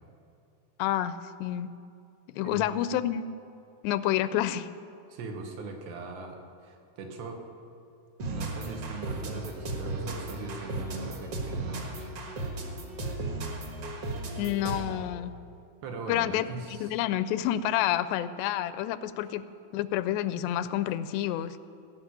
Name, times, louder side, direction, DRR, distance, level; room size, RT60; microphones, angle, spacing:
voice 1, 0.8-1.7 2.4-3.2 3.8-4.7 14.4-15.3 16.1-19.5 19.7-21.6, left 12 dB, 90° left, 14 dB, 2.7 m, -29 dB
voice 2, 5.1-7.5 8.3-12.1 15.8-16.9, right 3 dB, 85° right, 2 dB, 3.6 m, -40 dB
sound 1, 8.2-15.1, right 2 dB, 50° right, 1.9 m, -35 dB
19.0 x 6.6 x 9.6 m, 2.5 s
omnidirectional pair, 4.7 m